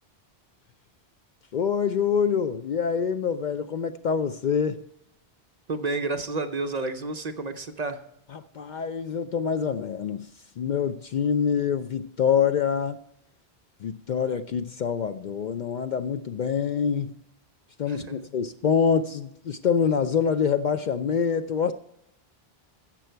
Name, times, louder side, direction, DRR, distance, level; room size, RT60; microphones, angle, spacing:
voice 1, 1.5-4.8 8.3-10.3 10.6-13.0 13.8-17.1 17.8-21.7, left 7 dB, 55° left, 0.6 m, -25 dB
voice 2, 5.7-8.0 17.9-18.2, right 3 dB, 45° right, 0.8 m, -30 dB
13.5 x 7.6 x 4.5 m
omnidirectional pair, 1.0 m